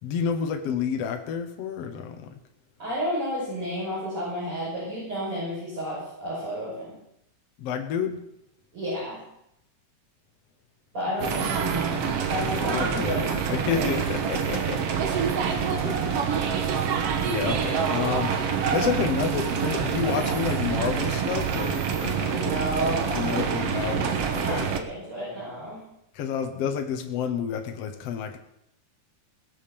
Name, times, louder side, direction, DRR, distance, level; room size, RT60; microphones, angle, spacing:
voice 1, 0.0-2.3 7.6-8.2 11.2-11.3 12.4-14.9 15.5-16.2 16.7-18.4 18.7-22.5 23.1-24.7 26.1-28.4, left 7 dB, 75° left, 5 dB, 1.4 m, -30 dB
voice 2, 2.8-6.9 8.7-9.2 10.9-12.0 12.3-13.9 14.5-14.6 22.3-23.3 24.4-25.8, equal, 30° right, -10 dB, 7.4 m, -31 dB
sound 1, 11.2-24.8, right 7 dB, 70° right, 1.4 m, -26 dB
21.0 x 7.2 x 7.0 m, 0.80 s
omnidirectional pair, 4.7 m